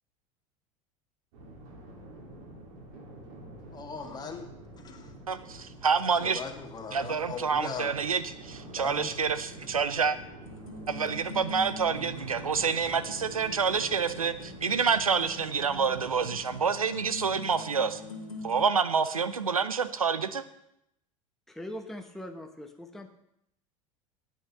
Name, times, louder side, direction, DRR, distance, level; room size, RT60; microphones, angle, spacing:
sound 1, 1.3-16.7, right 1 dB, 60° right, 3.0 m, -47 dB
voice 1, 3.7-4.5 4.8-5.1 6.2-7.9 8.7-9.1, left 5 dB, 25° left, 1.8 m, -39 dB
voice 2, 5.3-6.4 6.9-10.2 10.9-18.0 18.4-20.4, right 6 dB, 85° right, 0.7 m, -28 dB
sound 2, 10.4-18.6, left 2 dB, 90° left, 1.4 m, -44 dB
voice 3, 21.5-23.1, left 1 dB, ahead, 1.1 m, -41 dB
9.5 x 8.6 x 6.6 m
figure-of-eight pair, 75°, 18 cm